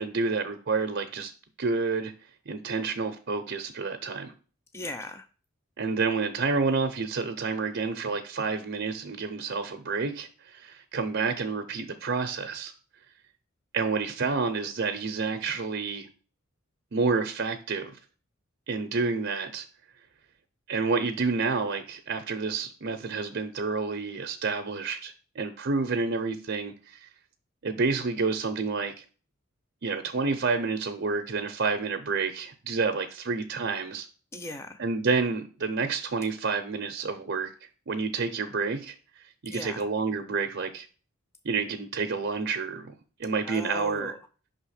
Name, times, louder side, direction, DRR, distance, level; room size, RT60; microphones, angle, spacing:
voice 1, 0.0-1.3 1.6-2.1 2.5-4.3 5.8-12.7 13.7-16.1 16.9-18.0 18.7-19.6 20.7-27.1 27.6-29.0 29.8-34.1 34.8-38.9 39.4-40.9 41.4-42.9 43.2-44.1, right 4 dB, 55° right, 6 dB, 0.6 m, -29 dB
voice 2, 4.7-5.3 34.3-34.8 39.5-39.9 43.5-44.2, left 1 dB, 15° left, 8 dB, 0.4 m, -38 dB
5.5 x 3.5 x 5.6 m, 0.38 s
head